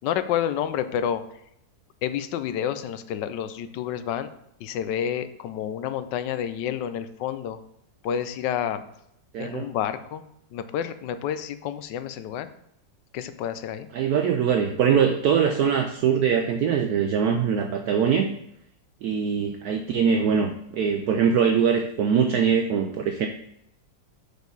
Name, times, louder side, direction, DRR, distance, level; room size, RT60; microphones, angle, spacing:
voice 1, 0.0-1.2 2.0-4.3 4.6-7.6 8.0-8.8 9.4-10.2 10.5-12.5 13.1-13.9, left 9 dB, 80° left, 11 dB, 1.2 m, -29 dB
voice 2, 9.3-9.7 13.9-18.3 19.0-23.3, right 7 dB, 70° right, 5 dB, 0.9 m, -22 dB
6.6 x 5.0 x 3.9 m, 0.78 s
omnidirectional pair, 1.9 m